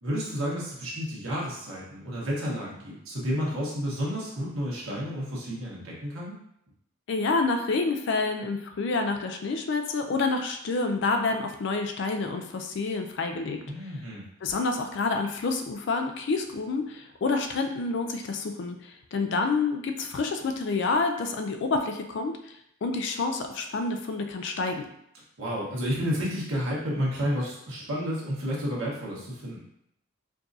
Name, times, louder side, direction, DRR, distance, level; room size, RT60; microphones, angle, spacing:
voice 1, 0.0-6.4 13.7-14.3 25.4-29.6, equal, 80° right, -5 dB, 1.3 m, -31 dB
voice 2, 7.1-13.6 14.4-24.9, left 3 dB, 55° left, 5 dB, 0.4 m, -28 dB
4.6 x 2.5 x 2.6 m, 0.76 s
head